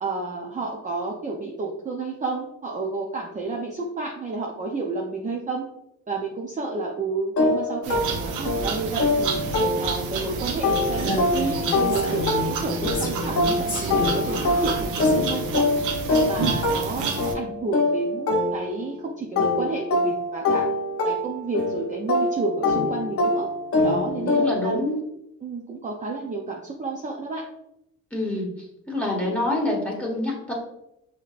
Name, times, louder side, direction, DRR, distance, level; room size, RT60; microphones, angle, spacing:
voice 1, 0.0-5.6 6.1-9.4 9.8-15.7 16.3-20.7 21.0-23.5 23.8-24.8 25.4-27.4, right 3 dB, 25° right, -1 dB, 0.6 m, -31 dB
sound 1, 7.4-10.2 10.6-19.0 19.4-24.8, left 2 dB, 50° left, 0.8 m, -24 dB
sound 2, 7.8-17.3, right 4 dB, 85° right, 0.7 m, -30 dB
Female speech woman speaking, 11.0-15.1, left 2 dB, 25° left, 1.3 m, -31 dB
voice 2, 23.8-25.0 28.1-28.5 28.9-30.5, left 2 dB, 5° left, -3 dB, 1.6 m, -27 dB
5.6 x 2.9 x 2.5 m, 0.82 s
cardioid pair, 90°, 30 cm